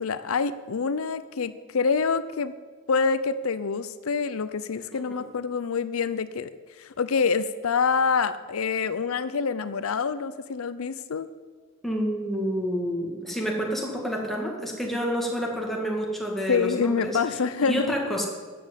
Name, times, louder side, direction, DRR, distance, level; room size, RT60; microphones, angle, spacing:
voice 1, 0.0-2.5 2.9-6.5 6.8-11.3 16.5-18.2, left 5 dB, 80° left, 14 dB, 0.5 m, -26 dB
voice 2, 11.8-17.2 17.6-18.2, equal, ahead, -1 dB, 2.1 m, -28 dB
13.0 x 7.8 x 8.1 m, 1.5 s
head